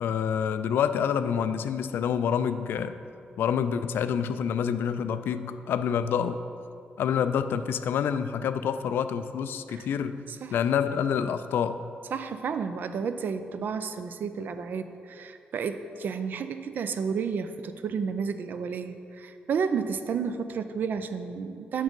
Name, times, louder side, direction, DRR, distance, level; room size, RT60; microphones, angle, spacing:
voice 1, 0.0-3.0 3.4-6.4 7.0-11.8, left 7 dB, 85° left, 11 dB, 0.3 m, -27 dB
voice 2, 12.1-21.8, right 6 dB, 60° right, 10 dB, 0.4 m, -31 dB
6.3 x 6.1 x 5.2 m, 2.5 s
wide cardioid pair, 135°, 4 cm